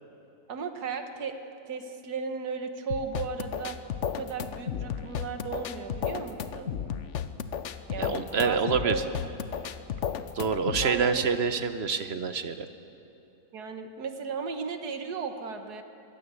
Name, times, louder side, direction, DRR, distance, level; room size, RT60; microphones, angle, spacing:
voice 1, 0.5-1.4 1.6-6.8 7.9-9.0 10.8-11.3 13.5-15.8, right 5 dB, 80° right, 7 dB, 1.8 m, -35 dB
sound 1, 2.9-10.9, left 8 dB, 60° left, 1.0 m, -34 dB
voice 2, 8.0-9.0 10.3-12.7, right 5 dB, 50° right, 10 dB, 1.0 m, -27 dB
22.5 x 16.0 x 8.3 m, 2.8 s
omnidirectional pair, 1.6 m